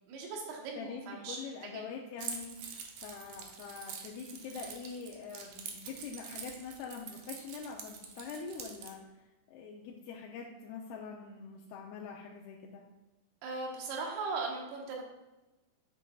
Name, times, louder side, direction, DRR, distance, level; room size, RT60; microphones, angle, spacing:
voice 1, 0.1-1.4 1.6-1.8 13.4-15.0, right 4 dB, 90° right, -1 dB, 3.3 m, -38 dB
voice 2, 0.8-12.8, left 5 dB, 90° left, -1 dB, 2.7 m, -44 dB
Keys jangling, 2.2-8.9, right 7 dB, 70° right, 1.9 m, -45 dB
9.3 x 8.3 x 2.3 m, 1.1 s
omnidirectional pair, 4.4 m